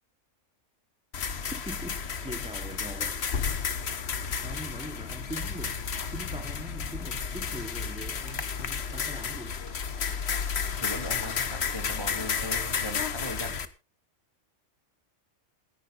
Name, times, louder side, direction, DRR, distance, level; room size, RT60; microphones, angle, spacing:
sound 1, 1.1-13.7, left 6 dB, 60° left, 1.3 m, -32 dB
voice 1, 1.2-3.3 4.2-5.8 6.1-9.6, right 1 dB, 5° right, 8 dB, 1.0 m, -42 dB
sound 2, 7.2-7.8 8.3-8.5 8.8-9.2 9.7-10.3 10.8-11.1 12.0-12.1, left 1 dB, 40° left, 7.6 m, -53 dB
voice 2, 10.8-13.6, left 1 dB, 20° left, 4 dB, 3.1 m, -38 dB
28.0 x 11.0 x 2.5 m, 0.30 s
omnidirectional pair, 1.3 m